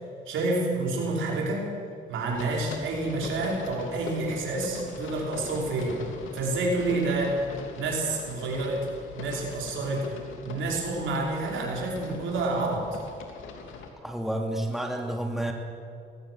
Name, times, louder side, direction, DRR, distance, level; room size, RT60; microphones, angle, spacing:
voice 1, 0.3-1.7 2.1-6.0 6.3-7.4 7.7-8.9 9.2-10.1 10.4-13.0, right 2 dB, 80° right, -1 dB, 5.5 m, -28 dB
sound 1, 2.3-13.9, left 4 dB, 80° left, 3.1 m, -42 dB
voice 2, 14.0-15.5, right 1 dB, ahead, 1 dB, 2.9 m, -30 dB
20.0 x 16.5 x 7.9 m, 2.4 s
cardioid pair, 90°, 20 cm